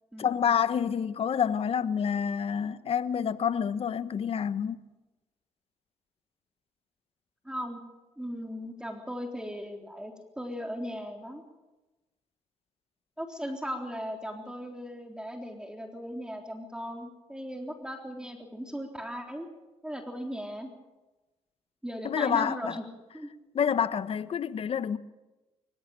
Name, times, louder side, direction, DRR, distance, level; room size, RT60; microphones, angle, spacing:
voice 1, 0.2-4.8 22.0-22.8 23.5-25.0, left 8 dB, 55° left, 1.2 m, -28 dB
voice 2, 7.4-7.8 8.2-11.4 13.2-19.5 19.8-20.7 21.8-22.8 23.1-23.3, equal, 5° right, 3.6 m, -37 dB
24.5 x 15.5 x 9.0 m
supercardioid pair, 65°, 12 cm